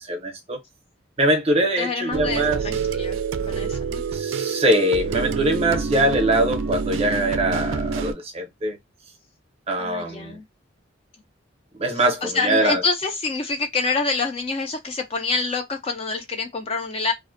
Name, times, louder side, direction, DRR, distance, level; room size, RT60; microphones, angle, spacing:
voice 1, 0.1-0.6 1.2-2.6 4.1-8.8 9.7-10.4 11.8-12.8, right 1 dB, 30° right, 0.6 m, -22 dB
voice 2, 1.8-3.2 3.5-4.0 9.8-10.4 11.9-17.1, left 4 dB, 30° left, 0.3 m, -27 dB
sound 1, 2.1-8.1, right 5 dB, 80° right, 0.4 m, -27 dB
2.5 x 2.0 x 2.4 m
head